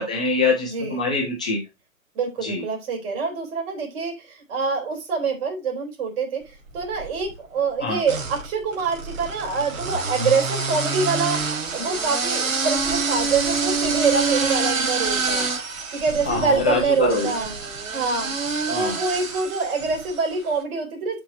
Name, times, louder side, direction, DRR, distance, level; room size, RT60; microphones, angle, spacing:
voice 1, 0.0-1.6 2.4-2.6 7.8-8.0 16.3-17.3 18.7-19.0, left 3 dB, 5° left, 0.3 m, -24 dB
voice 2, 0.7-1.0 2.1-15.5 15.9-17.5 17.9-18.3 18.7-21.2, right 5 dB, 45° right, 4.0 m, -25 dB
sound 1, 6.7-7.3 8.0-20.3, right 4 dB, 65° right, 2.9 m, -27 dB
11.5 x 4.4 x 3.0 m
hypercardioid pair, 135°, 42 cm